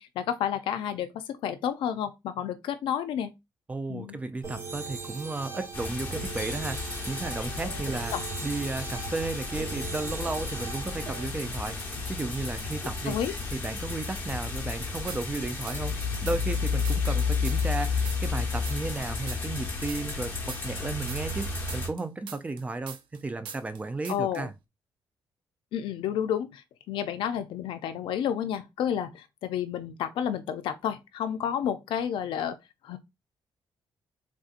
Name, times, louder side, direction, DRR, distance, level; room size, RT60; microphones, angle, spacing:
voice 1, 0.0-3.3 3.9-4.2 8.1-8.2 13.1-13.3 24.1-24.5 25.7-32.6 32.8-33.0, left 9 dB, 90° left, 0.4 m, -31 dB
voice 2, 3.7-8.1 8.4-13.1 13.5-24.5, right 3 dB, 15° right, 0.4 m, -34 dB
sound 1, 4.4-11.3, right 4 dB, 35° right, 1.2 m, -40 dB
sound 2, 5.7-21.9, left 4 dB, 20° left, 1.0 m, -32 dB
sound 3, 15.1-16.0 16.3-19.0 19.3-23.2 23.4-23.8 24.0-24.4, right 8 dB, 85° right, 0.5 m, -42 dB
3.5 x 2.6 x 2.4 m
cardioid pair, 135°, 8 cm